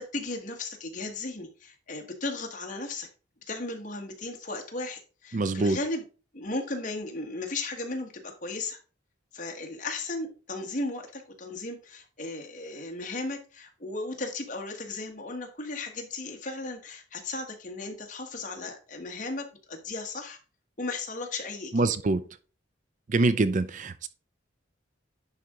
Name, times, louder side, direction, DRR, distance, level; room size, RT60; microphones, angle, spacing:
voice 1, 0.0-3.1 3.5-6.0 6.3-8.8 9.3-20.4 20.8-21.9, left 2 dB, 40° left, 3 dB, 1.5 m, -36 dB
voice 2, 5.3-5.8 21.7-22.3 23.1-24.1, right 3 dB, 40° right, 13 dB, 0.5 m, -25 dB
10.5 x 4.2 x 3.7 m, 0.35 s
head